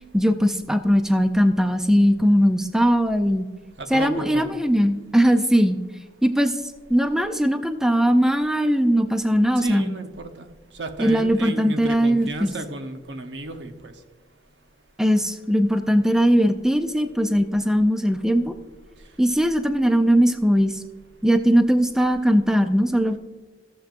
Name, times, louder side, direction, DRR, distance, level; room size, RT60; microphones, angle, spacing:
voice 1, 0.1-3.5 3.9-5.8 6.2-6.6 6.9-9.9 11.0-12.5 15.0-18.6 19.2-20.8 21.2-23.2, equal, 5° right, 8 dB, 0.4 m, -19 dB
voice 2, 3.8-4.5 9.6-10.5 10.7-13.9, right 2 dB, 80° right, 6 dB, 0.9 m, -33 dB
14.5 x 7.3 x 2.6 m, 1.2 s
head